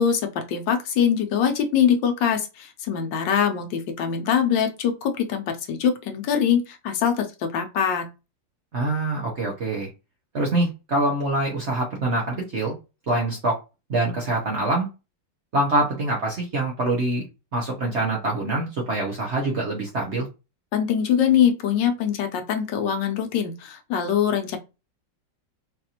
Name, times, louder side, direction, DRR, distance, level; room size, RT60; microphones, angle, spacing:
voice 1, 0.0-8.1 20.7-24.6, left 8 dB, 75° left, 1.3 m, -23 dB
voice 2, 8.7-9.9 10.3-12.7 13.1-13.6 13.9-14.9 15.5-17.2 17.5-20.3, right 2 dB, 50° right, 0.8 m, -25 dB
4.0 x 2.5 x 2.8 m
omnidirectional pair, 2.0 m